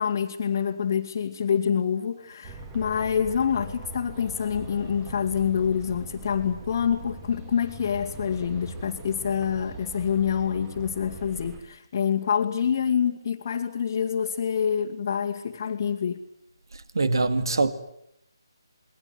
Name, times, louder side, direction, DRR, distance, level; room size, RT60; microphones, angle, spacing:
voice 1, 0.0-16.2, left 7 dB, 40° left, 2.0 m, -26 dB
sound 1, 2.4-11.6, right 3 dB, 20° right, 2.8 m, -41 dB
voice 2, 16.9-17.7, right 3 dB, 65° right, 2.2 m, -23 dB
28.0 x 21.5 x 9.4 m
figure-of-eight pair, 150°, 2 cm